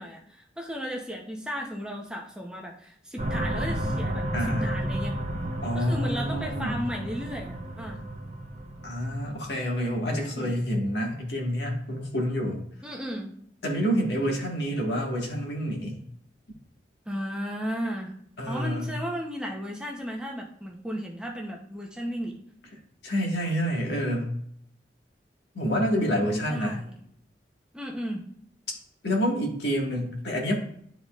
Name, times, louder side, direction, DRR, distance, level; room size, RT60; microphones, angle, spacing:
voice 1, 0.0-5.2 5.7-8.0 10.1-10.5 12.8-13.3 17.1-18.1 18.5-22.4 26.2-26.9 27.7-28.2, equal, 5° right, -1 dB, 0.8 m, -35 dB
sound 1, 3.2-9.5, right 1 dB, 40° right, 0.7 m, -32 dB
voice 2, 4.3-4.7 5.6-6.8 8.8-12.6 13.6-16.0 18.4-18.9 23.0-24.3 25.5-26.8 29.0-30.6, equal, 75° left, 0 dB, 1.7 m, -28 dB
11.5 x 4.0 x 2.4 m, 0.67 s
head